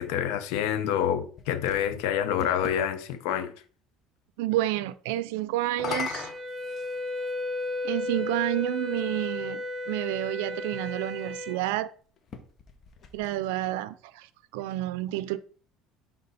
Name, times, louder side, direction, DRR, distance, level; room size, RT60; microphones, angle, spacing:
voice 1, 0.0-3.5, left 9 dB, 80° left, 0.8 m, -27 dB
sound 1, 1.0-2.8 5.6-7.4 8.3-8.4 12.2-13.7, left 5 dB, 40° left, 1.1 m, -39 dB
voice 2, 4.4-6.3 7.8-11.9 13.1-15.4, right 15 dB, 90° right, 0.4 m, -30 dB
Wind instrument woodwind instrument, 5.9-11.6, left 2 dB, 25° right, 0.9 m, -34 dB
6.6 x 3.6 x 4.1 m
supercardioid pair, 110°, 0 cm